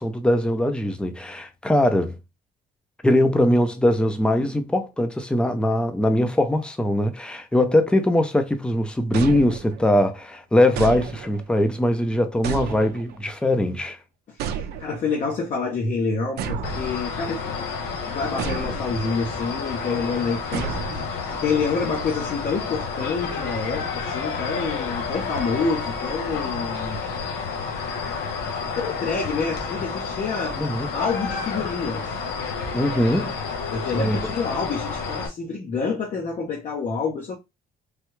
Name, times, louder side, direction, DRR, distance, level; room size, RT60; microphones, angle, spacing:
voice 1, 0.0-2.2 3.0-14.0 30.6-30.9 32.7-33.3 33.9-34.2, left 1 dB, 5° left, 0.5 m, -21 dB
sound 1, 9.1-10.0 10.8-11.6 12.4-13.3 14.4-15.2 16.4-17.4 18.4-19.2 20.5-21.4, right 6 dB, 75° right, 0.5 m, -32 dB
voice 2, 14.3-17.7 18.0-27.0 28.8-30.6 30.9-32.1 33.7-37.4, left 4 dB, 45° left, 0.7 m, -28 dB
sound 2, 16.6-35.3, left 5 dB, 85° left, 0.8 m, -30 dB
3.3 x 2.3 x 3.0 m
cardioid pair, 110°, 17 cm